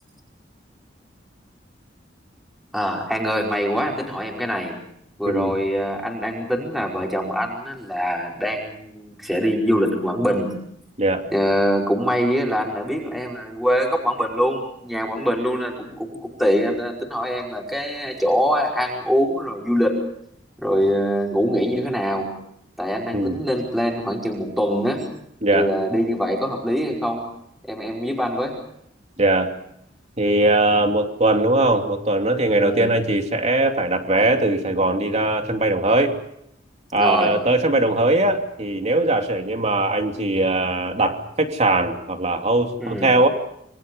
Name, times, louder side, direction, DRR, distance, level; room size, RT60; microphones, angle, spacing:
voice 1, 2.7-4.8 5.2-10.5 11.3-20.0 20.6-22.3 22.8-25.1 25.5-27.3 27.7-28.6 32.6-33.0 36.9-37.3 42.8-43.1, equal, ahead, -1 dB, 5.1 m, -23 dB
voice 2, 29.2-29.5 30.2-36.1 36.9-43.3, right 2 dB, 35° right, 4 dB, 2.9 m, -20 dB
27.5 x 25.0 x 5.4 m, 0.74 s
head